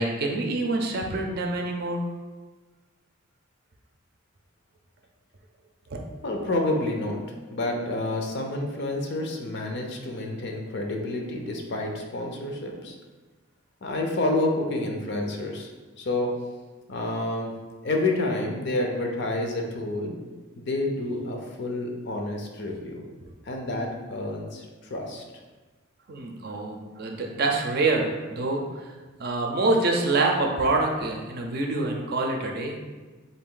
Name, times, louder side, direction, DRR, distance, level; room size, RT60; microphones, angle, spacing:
voice 1, 0.0-2.0 5.9-6.0 26.1-28.9 29.2-32.8, right 2 dB, 50° right, 2 dB, 0.5 m, -26 dB
voice 2, 6.2-7.2 7.5-13.0 13.8-15.7 16.0-16.3 16.9-17.5 17.8-20.1 20.6-23.0 23.5-25.2, left 2 dB, 55° left, 2 dB, 0.5 m, -29 dB
3.9 x 2.5 x 3.7 m, 1.3 s
head